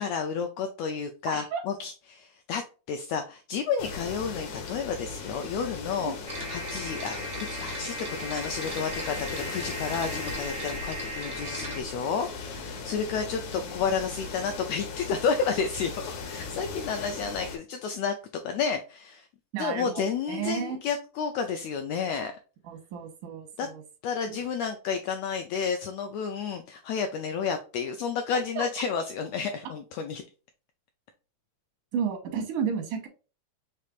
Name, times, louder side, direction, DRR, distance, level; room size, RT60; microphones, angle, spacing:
voice 1, 0.0-6.1 6.5-18.1 18.4-19.3 19.6-22.3 23.6-23.7 24.0-30.2, left 6 dB, 85° left, 6 dB, 1.5 m, -31 dB
sound 1, 3.8-17.6, left 5 dB, 70° left, 2.3 m, -38 dB
sound 2, 6.3-11.8, right 1 dB, 70° right, 0.4 m, -37 dB
voice 2, 19.5-20.0 20.3-20.8 22.7-23.8 24.3-24.4 28.3-28.6 31.9-33.1, right 7 dB, 85° right, 3 dB, 2.7 m, -32 dB
6.6 x 3.2 x 2.4 m, 0.35 s
omnidirectional pair, 3.5 m